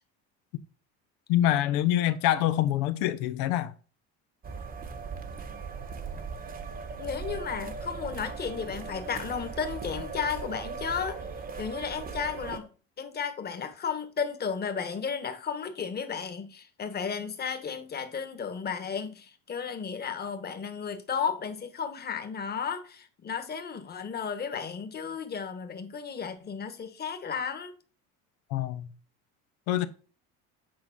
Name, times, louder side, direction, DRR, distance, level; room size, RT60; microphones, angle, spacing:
voice 1, 1.3-3.7 28.5-28.9 29.7-29.9, left 12 dB, 85° left, 0.9 m, -25 dB
sound 1, 4.4-12.6, right 5 dB, 25° right, 1.1 m, -38 dB
voice 2, 7.0-11.2 11.6-12.7 13.0-27.7, left 6 dB, 30° left, 1.4 m, -34 dB
8.7 x 3.8 x 5.9 m
cardioid pair, 120°, 33 cm